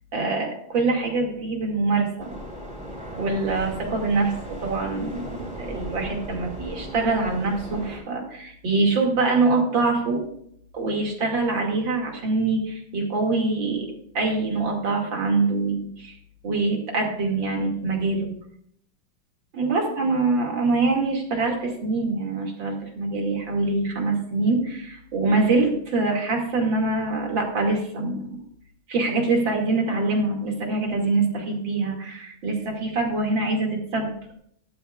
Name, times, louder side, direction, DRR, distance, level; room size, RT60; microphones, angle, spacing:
voice 1, 0.1-2.3 3.2-4.3 4.6-10.2 10.7-16.1 16.4-18.3 19.5-28.3 28.9-34.3, right 3 dB, 65° right, 1 dB, 3.1 m, -24 dB
sound 1, 2.2-8.0, equal, 5° right, 3.3 m, -37 dB
15.5 x 12.5 x 2.4 m, 0.68 s
omnidirectional pair, 2.3 m